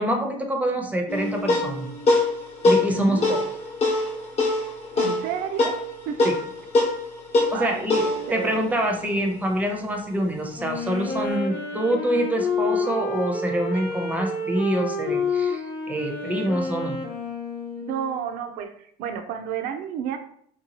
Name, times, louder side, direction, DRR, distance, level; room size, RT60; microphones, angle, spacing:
voice 1, 0.0-1.9 2.6-3.4 6.2-6.3 7.5-17.0, right 1 dB, 10° right, 3 dB, 0.6 m, -26 dB
sound 1, 1.1-9.8, left 2 dB, 40° left, 0.9 m, -24 dB
voice 2, 2.9-3.5 5.0-5.8 6.1-6.3 7.5-8.7 17.8-20.2, right 8 dB, 70° right, 7 dB, 0.4 m, -31 dB
Wind instrument woodwind instrument, 10.5-18.3, left 3 dB, 75° left, 0.8 m, -29 dB
2.7 x 2.2 x 2.8 m, 0.65 s
cardioid pair, 105°, 16 cm